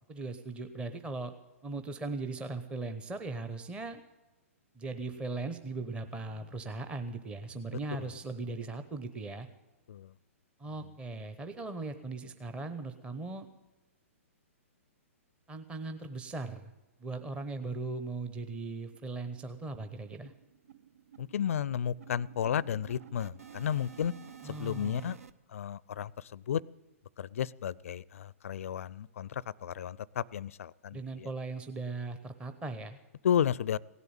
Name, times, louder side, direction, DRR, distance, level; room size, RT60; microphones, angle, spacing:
voice 1, 0.1-1.3 1.6-4.0 4.8-9.5 10.6-13.5 15.5-16.7 17.0-20.3 24.4-25.2 30.9-33.0, right 3 dB, 15° right, 9 dB, 0.8 m, -39 dB
sound 1, 18.1-18.2 18.5-18.6 18.9-19.1 19.4-25.3, right 9 dB, 80° right, 0.8 m, -52 dB
voice 2, 21.2-24.1 24.4-25.2 25.5-26.6 27.2-31.3 33.2-33.8, left 9 dB, 70° left, 24 dB, 0.4 m, -33 dB
17.0 x 8.3 x 8.9 m, 1.1 s
hypercardioid pair, 125°, 8 cm